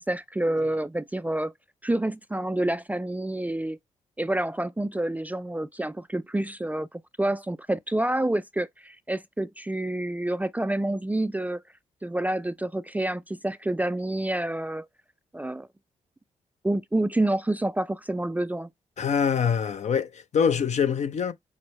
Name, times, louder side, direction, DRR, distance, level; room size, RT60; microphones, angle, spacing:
voice 1, 0.0-1.5 1.8-3.8 4.2-11.6 12.0-14.9 15.3-15.7 16.6-18.7, right 1 dB, 10° right, 0.3 m, -28 dB
voice 2, 19.0-21.3, left 7 dB, 55° left, 0.7 m, -24 dB
6.0 x 2.0 x 3.0 m
supercardioid pair, 55°, 14 cm